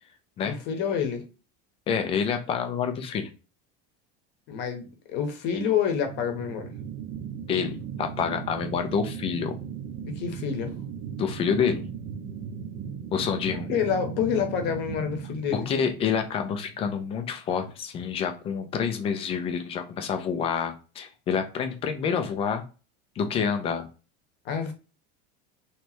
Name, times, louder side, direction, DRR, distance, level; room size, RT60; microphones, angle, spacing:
voice 1, 0.4-1.2 4.5-6.7 10.0-10.7 13.7-15.7 24.4-24.7, left 7 dB, 35° left, 1.0 m, -28 dB
voice 2, 1.9-3.3 7.5-9.6 11.2-11.8 13.1-13.7 15.5-22.6 23.2-23.9, left 7 dB, 20° left, 0.4 m, -28 dB
sound 1, 6.0-17.0, right 7 dB, 30° right, 0.8 m, -37 dB
3.3 x 3.0 x 4.3 m
cardioid pair, 180°, 30 cm